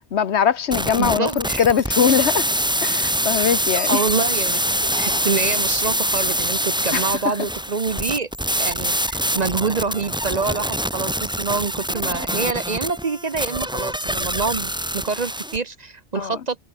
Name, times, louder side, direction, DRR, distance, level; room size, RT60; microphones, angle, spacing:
voice 1, 0.1-2.5 2.8-4.0 6.9-7.3 16.1-16.4, left 8 dB, 75° left, 1.3 m, -21 dB
sound 1, 0.7-15.6, equal, 5° right, 1.3 m, -24 dB
voice 2, 1.0-1.6 3.9-16.6, right 4 dB, 40° right, 0.9 m, -26 dB
omnidirectional pair, 1.1 m